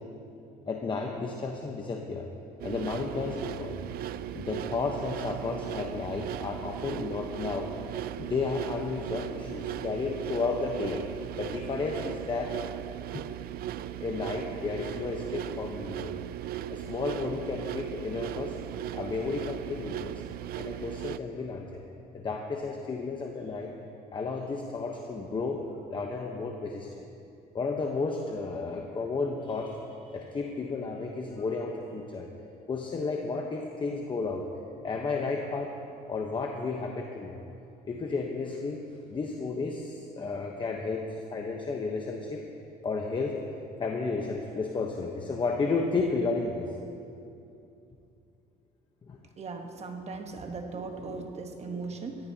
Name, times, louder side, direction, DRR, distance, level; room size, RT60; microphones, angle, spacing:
voice 1, 0.6-2.3 2.6-3.8 4.3-7.7 8.2-11.1 11.4-12.6 13.1-13.2 14.0-16.2 16.7-18.6 18.9-20.2 20.6-21.8 22.1-23.7 24.1-25.6 25.9-27.0 27.5-32.3 32.7-34.5 34.8-35.8 36.1-37.5 37.9-38.8 39.1-42.4 42.8-43.4 43.8-46.7 49.1-49.2, left 4 dB, 30° left, 1 dB, 1.0 m, -32 dB
sound 1, 2.6-21.2, right 12 dB, 65° right, 0.4 m, -37 dB
voice 2, 49.4-52.3, right 3 dB, 40° right, 4 dB, 1.2 m, -38 dB
18.0 x 14.5 x 2.8 m, 2.7 s
cardioid pair, 110°, 17 cm